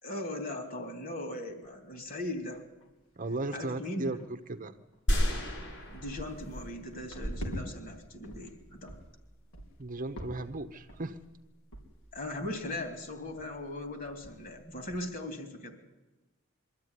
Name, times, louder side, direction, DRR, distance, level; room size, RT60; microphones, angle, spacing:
voice 1, 0.0-2.6 3.5-4.2 5.9-9.0 12.1-15.7, left 1 dB, 45° left, 6 dB, 3.2 m, -39 dB
sound 1, 1.6-1.7 2.2-2.3 2.6-3.0 3.3-3.6 4.2-4.3 4.9-5.0 5.3-7.6 8.0-8.5 8.9-9.1 9.5-9.8 10.2-10.6 10.9-11.2 11.7-11.8 12.1-12.2 12.4-12.8 13.3-13.5 13.7-13.8 14.0-14.5 14.9-15.0, equal, 80° left, 4.0 m, -43 dB
voice 2, 3.2-4.7 9.8-11.2, right 2 dB, 40° right, 8 dB, 1.0 m, -36 dB
sound 2, 5.1-6.8 7.3-7.4, equal, 65° left, 7.1 m, -31 dB
23.0 x 13.5 x 9.8 m, 1.1 s
head